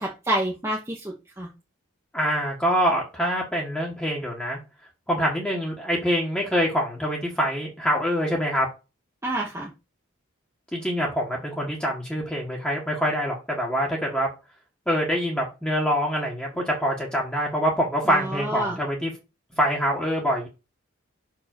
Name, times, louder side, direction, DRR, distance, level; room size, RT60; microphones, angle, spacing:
voice 1, 0.0-1.5 9.2-9.7 18.0-18.8, right 1 dB, 15° right, -3 dB, 1.2 m, -28 dB
voice 2, 2.1-4.6 5.1-8.7 10.7-14.3 14.9-19.1 19.6-20.5, equal, 5° left, -2 dB, 1.5 m, -25 dB
6.1 x 4.7 x 6.1 m, 0.28 s
head